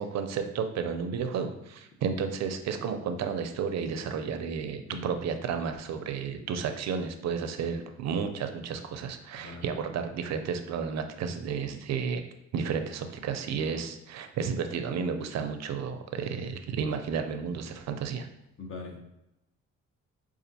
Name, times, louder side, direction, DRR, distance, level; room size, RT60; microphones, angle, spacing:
voice 1, 0.0-12.2 12.5-18.3, right 6 dB, 60° right, 7 dB, 0.5 m, -32 dB
voice 2, 4.9-5.2 9.3-9.7 18.6-19.0, left 3 dB, 45° left, 1 dB, 0.9 m, -41 dB
5.0 x 2.5 x 2.7 m, 0.89 s
cardioid pair, 90°, 30 cm